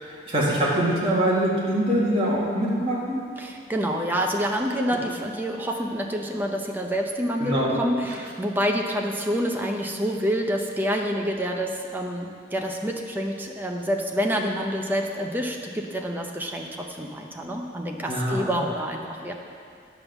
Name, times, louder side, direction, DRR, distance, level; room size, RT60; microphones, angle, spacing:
voice 1, 0.0-3.2 7.4-7.7 18.1-18.4, right 1 dB, 30° right, -6 dB, 2.0 m, -23 dB
voice 2, 3.4-19.3, equal, 10° right, 1 dB, 0.7 m, -27 dB
9.0 x 5.2 x 7.2 m, 2.2 s
head